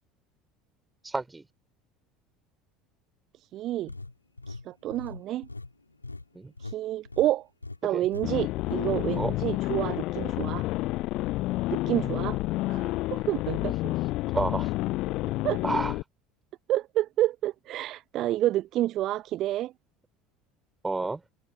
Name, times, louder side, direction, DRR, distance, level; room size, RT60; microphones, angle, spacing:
voice 1, 1.0-1.4 6.3-6.5 7.9-8.1 9.2-9.3 11.9-12.1 13.5-13.7 14.3-14.7 15.6-15.9 20.8-21.2, right 3 dB, 15° right, 3.7 m, -30 dB
voice 2, 3.5-3.9 4.5-5.5 6.6-7.5 7.8-10.7 11.7-12.4 12.7-13.9 15.4-15.6 16.7-19.7, right 14 dB, 45° right, 0.5 m, -29 dB
sound 1, 3.9-6.8 7.1-7.3 7.6-7.8 8.1-8.3 8.6-9.3, left 3 dB, 85° left, 2.3 m, -41 dB
sound 2, 8.2-16.0, left 19 dB, 50° left, 0.6 m, -29 dB
figure-of-eight pair, 65°, 0 cm